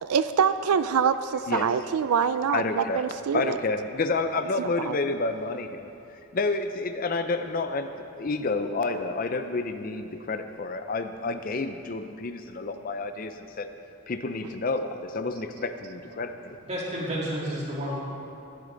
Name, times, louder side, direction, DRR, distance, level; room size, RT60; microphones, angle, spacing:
voice 1, 0.0-3.6 4.6-5.0, right 7 dB, 90° right, 12 dB, 0.4 m, -25 dB
voice 2, 2.5-3.0 3.3-5.9 6.3-13.7 14.1-16.6, left 3 dB, 40° left, 8 dB, 0.5 m, -29 dB
voice 3, 16.6-18.0, equal, 30° right, -5 dB, 2.5 m, -31 dB
16.5 x 11.5 x 3.9 m, 2.7 s
head